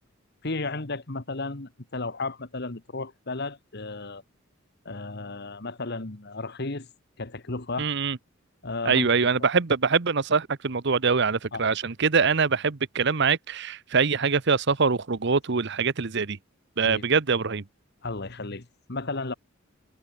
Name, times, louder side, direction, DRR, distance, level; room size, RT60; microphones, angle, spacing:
voice 1, 0.4-4.2 4.8-6.9 7.2-7.9 8.6-9.3 11.5-11.7 16.8-17.0 18.0-19.3, left 3 dB, 55° left, 1.6 m, -34 dB
voice 2, 7.8-8.2 8.8-16.4 16.8-17.6, right 5 dB, 55° right, 0.9 m, -24 dB
head